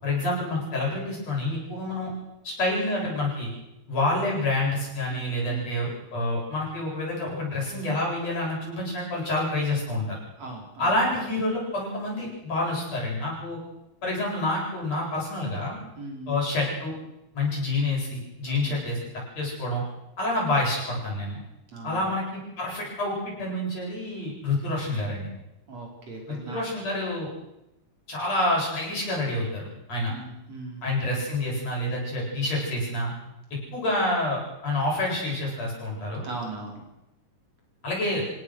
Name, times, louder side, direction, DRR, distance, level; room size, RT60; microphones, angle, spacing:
voice 1, 0.0-2.1 2.4-3.5 3.9-10.2 10.8-13.6 14.0-15.8 16.3-16.9 17.3-19.0 19.4-19.8 20.2-21.4 21.8-25.3 26.3-27.3 28.1-30.1 30.8-33.1 33.7-36.3 37.8-38.2, left 2 dB, 55° left, -3 dB, 9.4 m, -28 dB
voice 2, 5.1-6.0 10.4-10.9 16.0-16.4 18.5-18.8 21.7-22.1 25.7-26.6 30.1-30.8 36.2-36.8, right 3 dB, 55° right, 0 dB, 6.2 m, -39 dB
29.0 x 17.0 x 6.6 m, 0.93 s
omnidirectional pair, 3.5 m